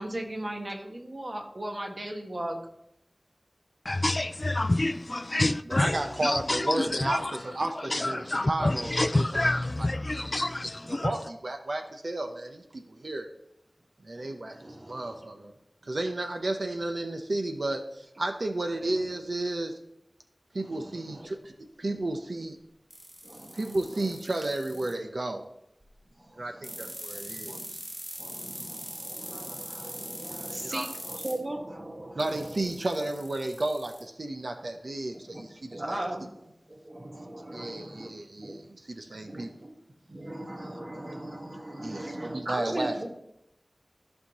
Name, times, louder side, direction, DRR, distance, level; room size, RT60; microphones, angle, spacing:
voice 1, 0.0-2.6 14.5-15.2 20.6-21.3 23.2-23.7 26.2-27.7 28.2-32.7 35.3-35.4 35.7-38.1 38.4-38.6 39.2-39.7 40.1-43.1, right 1 dB, 50° right, 1.5 m, -38 dB
voice 2, 3.9-7.4 7.9-11.1, left 2 dB, 45° left, 0.3 m, -27 dB
voice 3, 5.6-10.4 10.8-13.3 14.0-14.6 14.9-15.5 15.8-19.8 20.5-22.6 23.5-25.4 26.4-27.8 30.6-30.9 32.2-36.1 37.5-39.5 41.8-43.0, right 2 dB, 75° right, 0.7 m, -33 dB
sound 1, 22.9-24.9 26.6-31.3 32.2-34.0, right 1 dB, 35° right, 3.5 m, -41 dB
14.0 x 5.6 x 3.0 m
wide cardioid pair, 50°, 0 cm